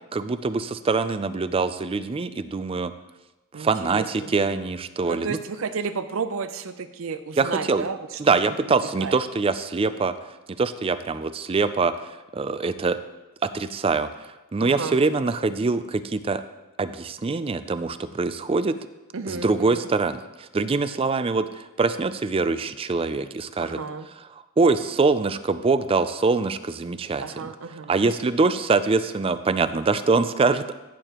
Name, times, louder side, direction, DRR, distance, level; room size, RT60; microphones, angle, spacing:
voice 1, 0.1-2.9 3.5-5.4 7.4-7.8 8.2-10.1 10.5-13.0 13.4-16.4 16.8-18.8 19.3-23.8 24.6-27.2 27.9-30.7, right 4 dB, 25° right, 12 dB, 0.4 m, -24 dB
voice 2, 3.5-4.3 5.0-9.2 14.6-15.0 19.1-19.9 23.6-24.1 27.2-27.9, right 5 dB, 75° right, 11 dB, 0.6 m, -32 dB
15.5 x 6.7 x 3.0 m, 1.1 s
head